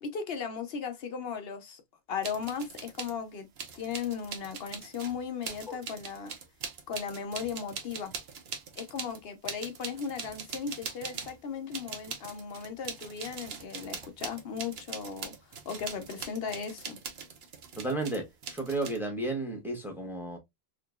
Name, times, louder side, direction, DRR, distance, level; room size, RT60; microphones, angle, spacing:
voice 1, 0.0-1.8 2.1-3.5 3.8-6.3 6.9-8.1 8.8-15.3 15.6-17.0, left 6 dB, 75° left, 0.9 m, -36 dB
sound 1, 2.2-3.1 3.6-11.4 11.7-19.0, right 6 dB, 80° right, 1.0 m, -42 dB
voice 2, 17.8-20.4, right 2 dB, ahead, 1.0 m, -33 dB
3.7 x 3.0 x 2.3 m
omnidirectional pair, 1.0 m